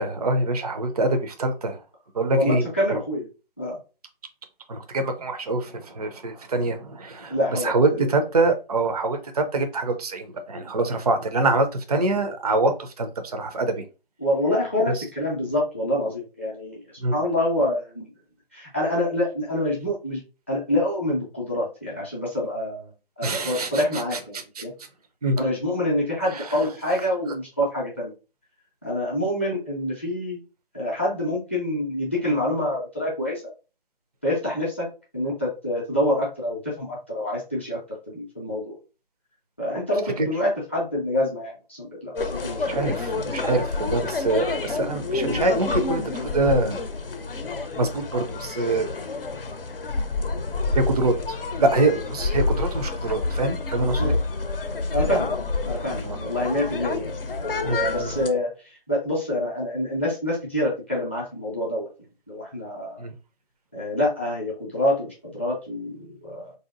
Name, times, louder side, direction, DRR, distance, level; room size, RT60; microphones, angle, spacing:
voice 1, 0.0-1.8 2.1-3.0 4.7-7.4 7.6-13.8 17.0-17.1 23.2-23.8 24.6-24.7 25.2-25.4 26.3-26.5 42.7-46.8 47.8-48.9 50.8-54.2 56.0-56.2 57.6-58.1 63.0-63.1, right 2 dB, 45° right, 7 dB, 0.4 m, -25 dB
voice 2, 2.3-3.3 3.6-3.8 7.3-8.1 14.2-16.8 17.1-18.1 18.5-20.2 20.5-22.9 23.2-24.7 25.4-28.1 28.8-30.4 30.7-33.4 34.2-34.9 35.1-37.8 38.1-38.7 39.6-42.9 54.0-54.2 54.9-55.3 55.6-57.1 57.4-61.9 62.3-63.0 63.7-66.5, left 1 dB, 15° left, -4 dB, 0.5 m, -26 dB
sound 1, 42.2-58.3, left 3 dB, 70° left, 0.7 m, -28 dB
3.4 x 2.7 x 2.4 m, 0.31 s
figure-of-eight pair, 155°, 29 cm